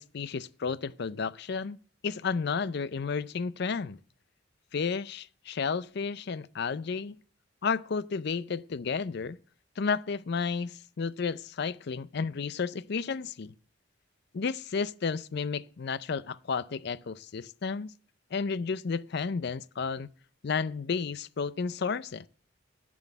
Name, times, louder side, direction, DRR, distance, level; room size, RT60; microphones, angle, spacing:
voice 1, 0.0-1.8 2.0-4.0 4.7-7.2 7.6-9.4 9.8-13.5 14.3-17.9 18.3-20.1 20.4-22.2, left 5 dB, 55° left, 0.5 m, -32 dB
10.5 x 6.3 x 7.9 m
head